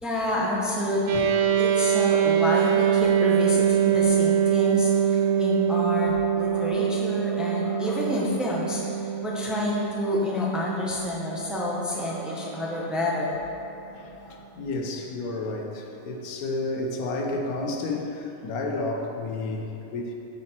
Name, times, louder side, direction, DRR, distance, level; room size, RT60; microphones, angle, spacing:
voice 1, 0.0-13.9 14.2-14.4, left 1 dB, ahead, -4 dB, 0.8 m, -29 dB
sound 1, 1.1-12.6, right 8 dB, 60° right, 0.9 m, -24 dB
voice 2, 13.8-20.1, left 2 dB, 90° left, 2 dB, 1.2 m, -31 dB
8.4 x 5.3 x 4.3 m, 2.8 s
omnidirectional pair, 1.5 m